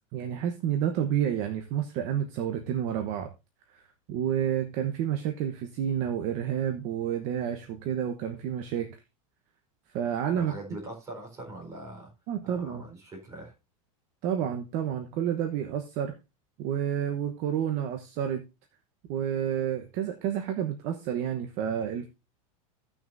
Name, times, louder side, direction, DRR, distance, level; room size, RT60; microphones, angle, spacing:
voice 1, 0.1-3.3 3.7-3.8 4.1-9.0 9.9-10.5 12.3-12.8 14.2-16.1 16.6-18.4 19.1-22.1, right 9 dB, 40° right, 1.1 m, -30 dB
voice 2, 10.4-12.1 12.4-13.5, right 1 dB, 15° right, 4.3 m, -42 dB
16.5 x 6.2 x 2.7 m
supercardioid pair, 165°, 18 cm